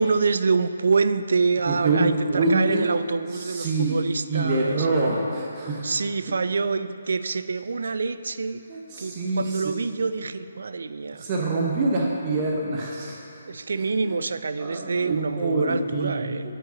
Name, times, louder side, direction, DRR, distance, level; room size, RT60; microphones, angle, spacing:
voice 1, 0.0-4.9 5.8-8.6 9.0-11.3 13.5-16.4, right 4 dB, 65° right, 12 dB, 0.4 m, -26 dB
voice 2, 1.7-2.9 3.3-4.0 4.3-5.9 8.7-9.7 11.1-13.2 14.1-14.2 14.6-16.2, right 2 dB, 30° right, -2 dB, 1.0 m, -25 dB
8.8 x 5.0 x 7.2 m, 2.6 s
figure-of-eight pair, 145°, 0 cm